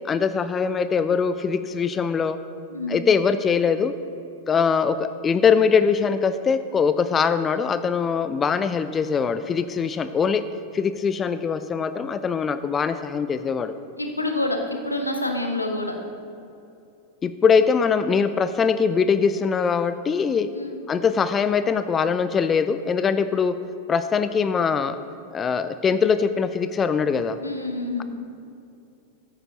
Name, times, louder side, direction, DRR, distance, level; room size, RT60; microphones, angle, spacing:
voice 1, 0.1-2.4 2.9-3.9 4.5-10.4 10.7-13.7 17.2-20.5 20.9-23.6 23.9-25.0 25.3-27.4, left 6 dB, 20° left, 12 dB, 0.3 m, -22 dB
voice 2, 14.0-15.9 20.5-20.7 27.4-28.0, left 2 dB, 85° left, 4 dB, 1.0 m, -27 dB
14.0 x 8.7 x 2.9 m, 2.6 s
figure-of-eight pair, 90°, 0 cm